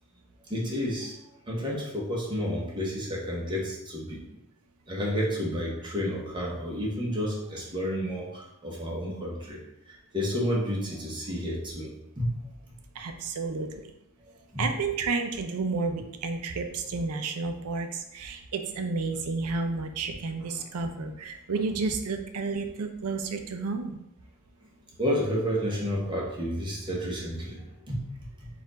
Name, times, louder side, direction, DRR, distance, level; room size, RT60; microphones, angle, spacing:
voice 1, 0.5-1.2 1.5-4.2 4.9-12.3 14.5-14.6 20.5-20.6 25.0-28.5, equal, 20° right, -3 dB, 1.0 m, -31 dB
voice 2, 12.9-13.7 14.6-24.0, right 4 dB, 75° right, 6 dB, 0.5 m, -31 dB
4.2 x 2.5 x 3.9 m, 0.84 s
head